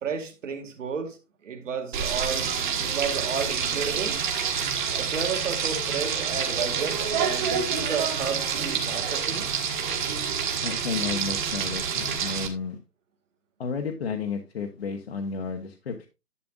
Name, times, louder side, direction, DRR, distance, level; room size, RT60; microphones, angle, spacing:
voice 1, 0.0-4.2 4.9-9.5, right 6 dB, 50° right, 2.2 m, -33 dB
Frying (food), 1.9-12.5, right 7 dB, 30° right, 1.7 m, -27 dB
voice 2, 10.6-12.8 13.6-16.1, left 5 dB, 40° left, 1.1 m, -32 dB
11.0 x 8.4 x 2.5 m
hypercardioid pair, 160°, 48 cm